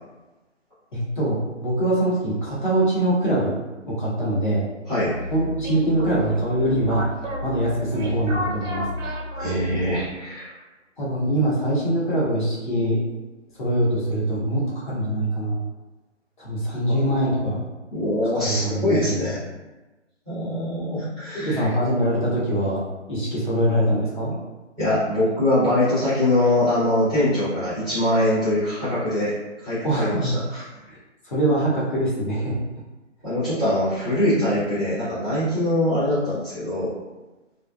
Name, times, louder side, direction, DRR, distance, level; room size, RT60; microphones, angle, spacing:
voice 1, 0.9-3.5 3.9-4.6 5.3-7.1 7.4-8.8 11.0-13.0 13.6-15.6 16.4-17.6 18.4-19.3 21.3-22.8 23.1-24.4 29.8-30.3 30.9-31.0 31.3-32.6, right 1 dB, 40° left, -7 dB, 0.7 m, -23 dB
sound 1, 5.0-10.1, left 1 dB, 90° right, 0.7 m, -31 dB
voice 2, 9.4-10.5 16.9-17.6 17.9-19.4 20.3-21.7 24.8-29.3 29.6-30.6 33.2-36.9, left 1 dB, 5° right, -18 dB, 0.6 m, -23 dB
2.6 x 2.1 x 2.2 m, 1.1 s
figure-of-eight pair, 160°, 37 cm